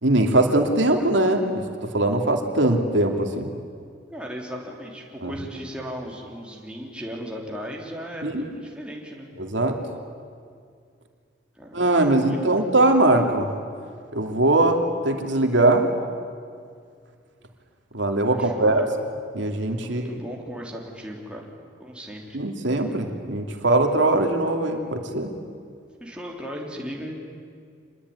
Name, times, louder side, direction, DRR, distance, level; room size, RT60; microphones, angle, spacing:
voice 1, 0.0-3.5 5.2-5.3 8.2-8.5 9.4-9.7 11.7-13.5 14.1-15.9 17.9-18.8 19.3-20.1 22.3-25.3, right 2 dB, 85° right, 3 dB, 2.7 m, -21 dB
voice 2, 4.1-9.3 11.5-11.9 12.2-12.6 18.3-18.9 19.8-21.5 21.8-22.4 26.0-27.1, equal, 5° right, -1 dB, 3.5 m, -36 dB
27.0 x 21.0 x 9.8 m, 2.2 s
head